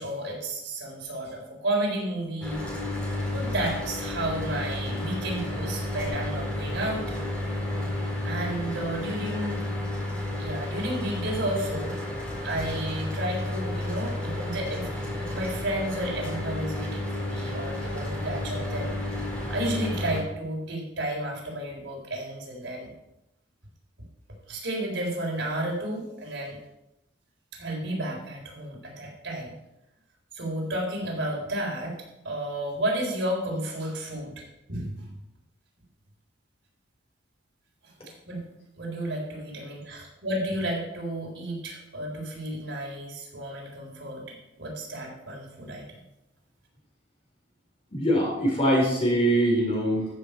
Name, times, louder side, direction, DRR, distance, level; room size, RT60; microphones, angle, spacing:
voice 1, 0.0-2.7 3.2-7.0 8.2-9.6 10.4-12.0 12.4-19.0 19.5-22.9 24.5-26.6 27.6-29.5 30.3-31.9 32.2-35.2 38.3-38.4 38.8-44.2 44.6-45.8, right 1 dB, 75° right, -2 dB, 3.9 m, -32 dB
Mechanical fan, 2.4-20.2, left 1 dB, 5° left, 4.0 m, -32 dB
voice 2, 47.9-50.1, equal, 30° left, -2 dB, 4.0 m, -23 dB
14.0 x 6.8 x 4.5 m, 0.88 s
head